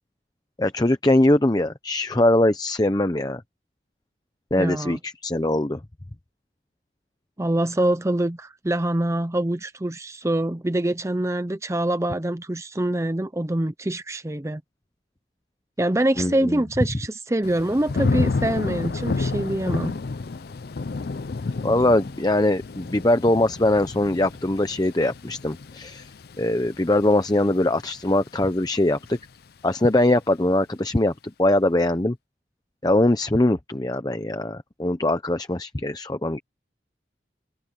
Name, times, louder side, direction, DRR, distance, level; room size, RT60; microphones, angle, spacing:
voice 1, 0.6-3.4 4.5-5.8 16.2-16.6 21.6-26.1 26.4-29.2 29.6-31.1 31.4-32.1 32.8-36.4, left 1 dB, 20° left, 0.8 m, -22 dB
voice 2, 4.6-5.0 7.4-14.6 15.8-20.0, right 1 dB, 15° right, 0.6 m, -25 dB
Thunder / Rain, 17.4-28.4 28.8-29.2, left 3 dB, 60° left, 0.5 m, -30 dB
open air
head